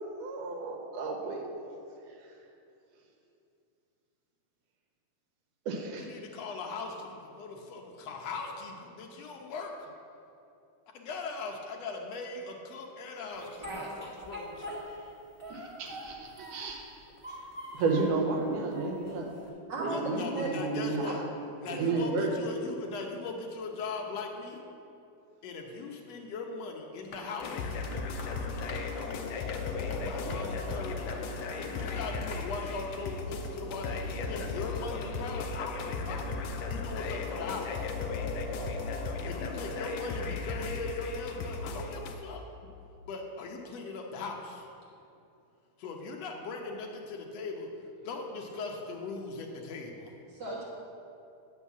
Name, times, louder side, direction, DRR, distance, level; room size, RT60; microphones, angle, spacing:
voice 1, 0.0-1.5 5.7-6.1 15.5-16.8 17.3-17.4 17.7-19.3 19.8-21.1 21.7-22.3 34.5-34.6, right 3 dB, 80° right, 1 dB, 2.7 m, -32 dB
voice 2, 6.0-9.7 10.9-14.8 19.9-21.2 21.6-24.6 25.4-27.8 29.7-31.1 31.6-36.3 36.7-37.9 39.2-42.4 43.1-44.7 45.8-47.7 48.0-50.1, left 3 dB, 70° left, 1 dB, 1.7 m, -39 dB
Speech, 13.4-15.1 15.4-16.8 17.2-18.2 18.7-19.5, equal, 25° right, 0.6 m, -42 dB
sound 1, 27.0-32.5, left 2 dB, 55° left, 2.5 m, -47 dB
sound 2, 27.4-42.1, left 4 dB, 90° left, 1.4 m, -36 dB
voice 3, 50.3-50.7, right 3 dB, 50° right, -6 dB, 1.4 m, -37 dB
9.9 x 5.5 x 7.1 m, 2.7 s
omnidirectional pair, 3.7 m